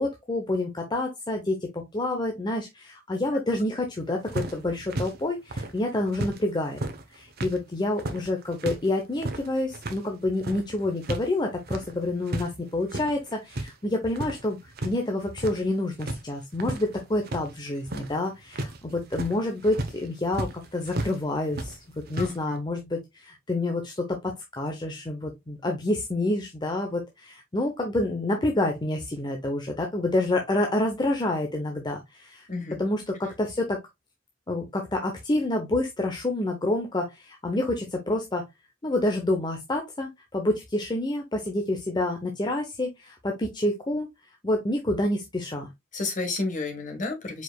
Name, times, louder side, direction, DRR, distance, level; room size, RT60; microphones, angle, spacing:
voice 1, 0.0-6.8 7.1-21.7 22.1-32.5 32.8-33.8 34.5-38.4 38.8-44.1 44.4-45.7, left 2 dB, 20° left, 0.7 m, -28 dB
sound 1, 4.3-6.4 6.7-11.3 11.5-12.5 12.8-13.7 14.0-15.0 15.2-15.7 16.0-21.2 21.5-22.4, right 2 dB, 55° right, 0.9 m, -34 dB
voice 2, 22.2-22.6 32.5-32.8 45.9-47.4, left 3 dB, 40° left, 1.4 m, -31 dB
4.8 x 4.8 x 2.3 m
head